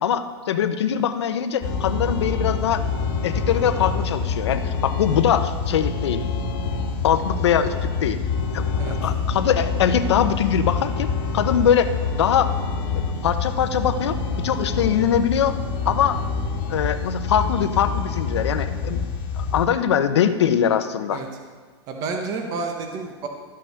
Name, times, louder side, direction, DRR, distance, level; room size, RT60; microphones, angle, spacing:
voice 1, 0.0-2.8 3.2-6.2 7.0-8.2 8.5-12.6 12.9-15.6 15.8-16.2 16.7-19.0 19.4-21.2, left 8 dB, 80° left, 10 dB, 0.9 m, -22 dB
sound 1, 1.6-19.7, left 4 dB, 40° left, 1.6 m, -26 dB
voice 2, 21.9-23.3, right 4 dB, 25° right, 3 dB, 1.1 m, -29 dB
12.5 x 5.8 x 6.6 m, 1.5 s
supercardioid pair, 160°, 14 cm